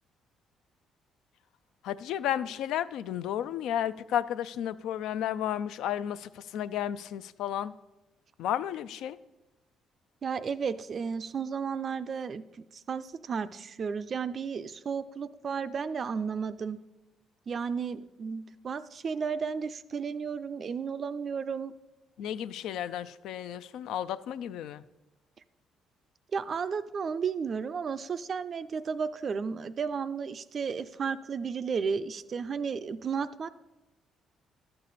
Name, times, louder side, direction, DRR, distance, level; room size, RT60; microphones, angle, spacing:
voice 1, 1.8-7.7 8.4-9.2 22.2-24.8, left 10 dB, 80° left, 15 dB, 0.3 m, -33 dB
voice 2, 10.2-12.4 12.7-16.8 17.5-21.7 26.3-33.5, right 6 dB, 45° right, 13 dB, 0.3 m, -33 dB
12.0 x 6.7 x 4.1 m, 1.1 s
cardioid pair, 90°, 0 cm